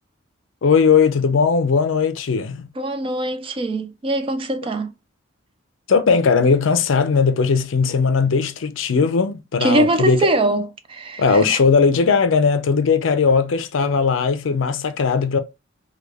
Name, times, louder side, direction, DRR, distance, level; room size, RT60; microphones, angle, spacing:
voice 1, 0.6-2.6 5.9-10.2 11.2-15.4, left 5 dB, 75° left, 0.4 m, -18 dB
voice 2, 2.8-4.9 9.6-11.6, right 1 dB, 25° right, 0.3 m, -22 dB
3.4 x 2.3 x 3.2 m
head